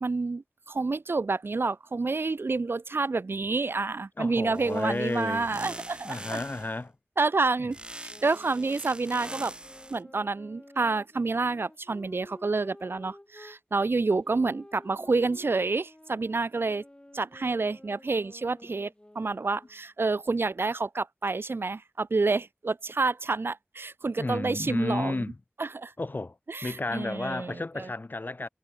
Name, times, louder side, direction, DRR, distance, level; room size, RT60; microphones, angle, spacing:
voice 1, 0.0-6.4 7.2-9.5 9.9-16.8 17.1-25.3 25.6-25.9 26.5-27.9, right 3 dB, 90° right, 0.6 m, -29 dB
voice 2, 4.2-5.5 6.0-6.9 7.6-7.7 24.2-25.4 26.0-26.4 26.6-28.5, left 2 dB, 55° left, 0.8 m, -32 dB
sound 1, 4.6-6.8 7.7-10.0, right 1 dB, 25° right, 0.9 m, -43 dB
sound 2, 8.1-13.6 14.2-19.8, left 1 dB, 25° left, 3.6 m, -52 dB
wide cardioid pair, 50°, 4 cm